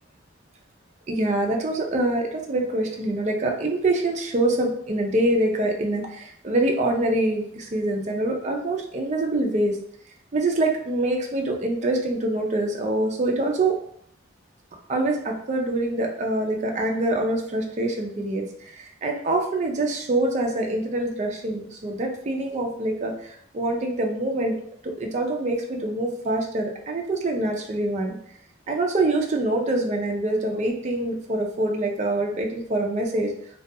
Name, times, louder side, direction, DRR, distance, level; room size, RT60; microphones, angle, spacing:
voice 1, 1.1-9.8 10.3-13.8 14.9-18.5 18.7-24.6 24.8-28.2 28.7-33.3, right 2 dB, 35° right, 1 dB, 0.4 m, -25 dB
2.3 x 2.2 x 2.6 m, 0.64 s
head